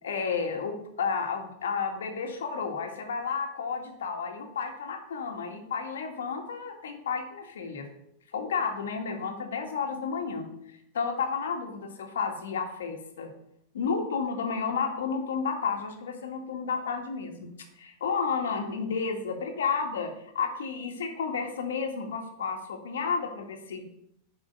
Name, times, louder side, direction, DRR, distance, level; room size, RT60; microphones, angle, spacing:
voice 1, 0.0-7.9 8.3-13.3 13.7-17.4 17.8-23.8, left 5 dB, 85° left, 4 dB, 1.8 m, -32 dB
9.0 x 5.6 x 6.6 m, 0.76 s
hypercardioid pair, 105°, 0 cm